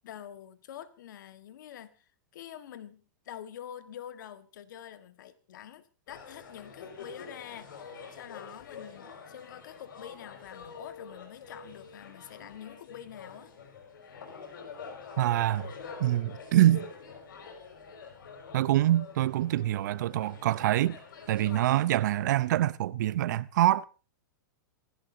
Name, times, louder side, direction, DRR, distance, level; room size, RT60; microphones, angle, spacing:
voice 1, 0.0-13.5, left 10 dB, 65° left, 1.6 m, -46 dB
sound 1, 6.1-21.8, left 5 dB, 85° left, 5.5 m, -46 dB
voice 2, 15.2-15.7 16.0-16.9 18.5-21.0 21.3-23.9, right 13 dB, 60° right, 0.7 m, -25 dB
26.5 x 11.5 x 2.8 m
supercardioid pair, 165°, 11 cm